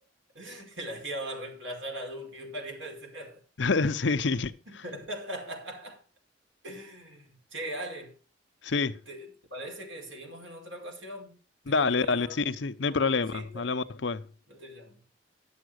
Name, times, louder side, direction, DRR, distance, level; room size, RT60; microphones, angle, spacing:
voice 1, 0.3-3.4 4.7-6.0 6.6-8.1 9.1-11.4 11.7-12.4 12.9-13.8 14.5-15.0, right 1 dB, 85° right, 5.0 m, -40 dB
voice 2, 3.6-4.6 8.6-9.0 11.7-14.2, left 4 dB, 70° left, 0.7 m, -27 dB
11.5 x 7.4 x 6.3 m
head